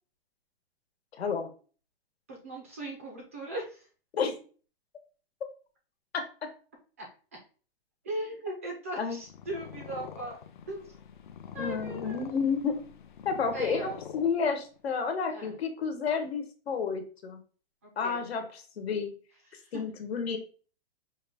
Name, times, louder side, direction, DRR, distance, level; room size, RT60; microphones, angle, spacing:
voice 1, 1.2-1.5 4.2-4.3 6.1-6.2 9.0-9.2 11.6-12.8 13.2-17.4 18.0-19.1 19.7-20.4, left 5 dB, 80° left, 6 dB, 1.3 m, -31 dB
voice 2, 2.3-3.9 7.0-7.1 8.0-10.4 10.7-10.9 11.5-12.2 13.5-13.9 15.3-15.6 18.0-18.2 19.5-19.7, right 1 dB, 15° right, 0 dB, 0.4 m, -38 dB
Purr, 9.1-14.8, left 8 dB, 50° left, 0.6 m, -45 dB
5.2 x 2.6 x 3.4 m, 0.39 s
hypercardioid pair, 175°, 31 cm